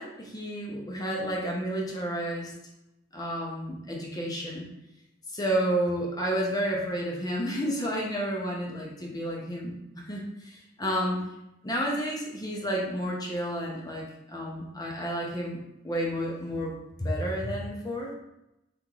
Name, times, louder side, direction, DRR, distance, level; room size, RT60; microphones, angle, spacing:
voice 1, 0.0-2.5 3.1-4.7 5.3-9.8 10.1-11.2 11.6-16.7 17.0-18.1, equal, 20° left, -2 dB, 0.6 m, -31 dB
3.4 x 3.0 x 3.8 m, 0.88 s
head